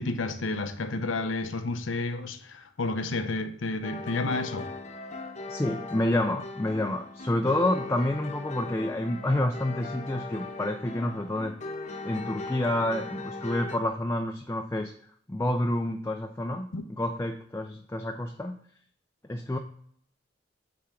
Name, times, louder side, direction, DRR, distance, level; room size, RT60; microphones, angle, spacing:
voice 1, 0.0-4.7 16.7-16.8, left 2 dB, 90° left, 0.8 m, -31 dB
sound 1, 3.8-13.8, left 3 dB, 40° left, 0.9 m, -39 dB
voice 2, 5.5-11.5 12.0-18.6 19.3-19.6, left 1 dB, 15° left, 0.4 m, -29 dB
8.4 x 3.5 x 5.7 m
head